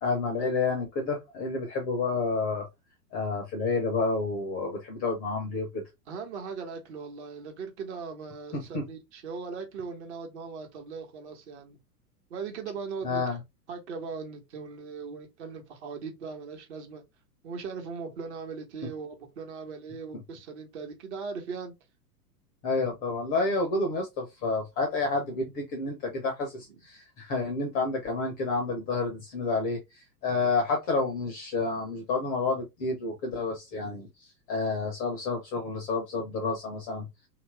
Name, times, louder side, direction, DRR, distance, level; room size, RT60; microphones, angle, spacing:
voice 1, 0.0-2.7 3.1-5.8 8.7-8.8 13.0-13.4 22.6-37.1, left 3 dB, 20° left, 0.6 m, -29 dB
voice 2, 6.1-11.8 12.3-13.2 13.7-17.0 17.4-21.7, right 5 dB, 45° right, 1.1 m, -39 dB
2.9 x 2.5 x 3.2 m
figure-of-eight pair, 100°, 49 cm